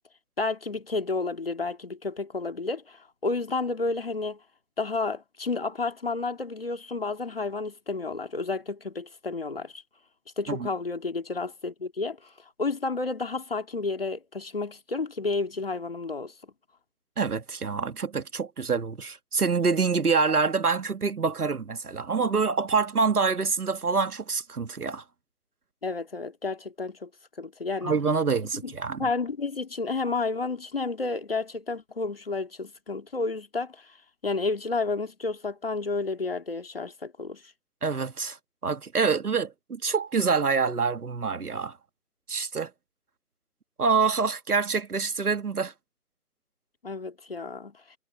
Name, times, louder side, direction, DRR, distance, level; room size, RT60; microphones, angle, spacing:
voice 1, 0.4-4.4 4.8-9.8 10.4-12.2 12.6-16.3 25.8-27.1 27.4-27.9 28.6-28.7 29.0-33.8 34.2-37.4 46.8-47.7, left 3 dB, 40° left, 2.2 m, -31 dB
voice 2, 17.2-25.0 27.8-29.1 37.8-38.4 38.6-41.8 42.3-42.7 43.8-45.7, right 5 dB, 75° right, 1.8 m, -26 dB
figure-of-eight pair, 180°, 46 cm